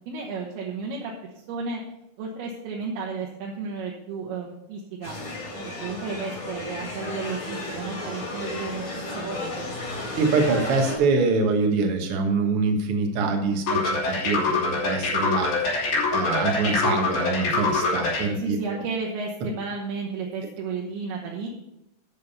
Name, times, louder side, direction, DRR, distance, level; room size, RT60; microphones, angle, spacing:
voice 1, 0.1-1.1 1.5-1.8 2.2-5.2 5.5-8.8 9.1-9.7 18.4-21.5, right 4 dB, 80° right, -2 dB, 3.0 m, -33 dB
sound 1, 5.0-11.0, left 2 dB, 55° left, 5.0 m, -33 dB
voice 2, 10.1-18.6, right 4 dB, 60° right, 3 dB, 1.5 m, -25 dB
sound 2, 13.7-18.3, left 3 dB, 75° left, 5.3 m, -24 dB
12.5 x 5.6 x 5.5 m, 0.86 s
omnidirectional pair, 4.5 m